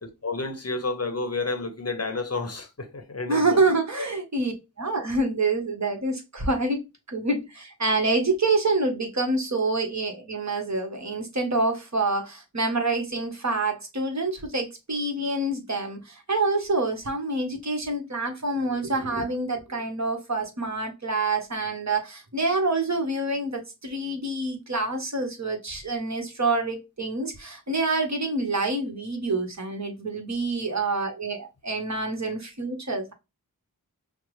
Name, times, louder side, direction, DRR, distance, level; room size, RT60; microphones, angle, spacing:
voice 1, 0.0-3.8, left 3 dB, 40° left, 0.7 m, -30 dB
voice 2, 3.3-6.8 7.1-33.1, right 2 dB, 45° right, 1.1 m, -27 dB
5.5 x 2.0 x 3.1 m
wide cardioid pair, 45°, 37 cm